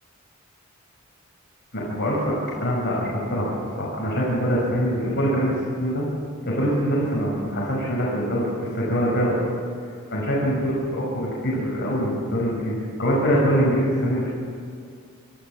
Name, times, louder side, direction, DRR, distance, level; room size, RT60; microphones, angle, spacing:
voice 1, 1.7-2.3 2.6-6.0 6.4-9.4 10.1-14.3, equal, 50° left, -5 dB, 5.9 m, -24 dB
29.0 x 14.0 x 7.7 m, 2.2 s
head